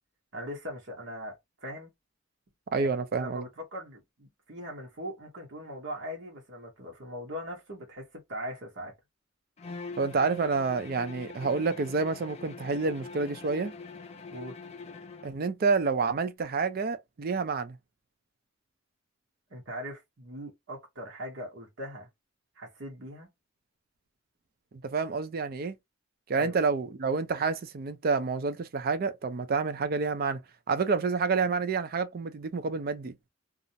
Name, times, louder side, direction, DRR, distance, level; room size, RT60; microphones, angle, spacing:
voice 1, 0.3-1.9 2.8-8.9 14.3-14.5 19.5-22.1 22.6-23.3 26.3-26.6, equal, 75° right, 0.9 m, -40 dB
voice 2, 2.7-3.4 10.0-13.7 15.2-17.8 24.8-25.8 26.3-30.4 30.7-33.1, right 4 dB, 55° right, 0.4 m, -28 dB
Bowed string instrument, 9.6-15.4, left 4 dB, 35° left, 0.4 m, -44 dB
2.4 x 2.0 x 2.6 m
head